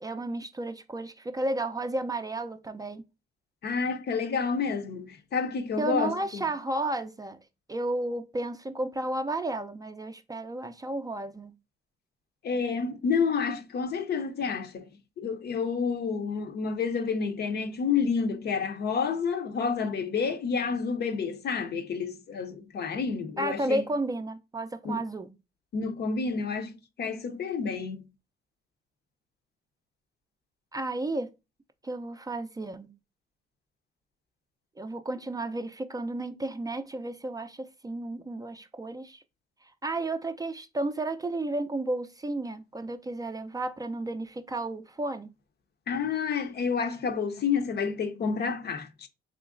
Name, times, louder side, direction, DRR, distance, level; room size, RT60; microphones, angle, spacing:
voice 1, 0.0-3.0 5.8-7.4 7.7-11.5 23.4-25.3 30.7-31.3 31.8-32.9 34.8-39.2 39.8-45.3, right 2 dB, 20° right, 0.4 m, -32 dB
voice 2, 3.6-6.4 12.4-14.9 15.2-23.8 24.8-25.0 25.7-26.7 27.0-28.0 45.9-49.1, left 5 dB, 55° left, 0.6 m, -29 dB
3.7 x 3.0 x 2.4 m
cardioid pair, 90°, 20 cm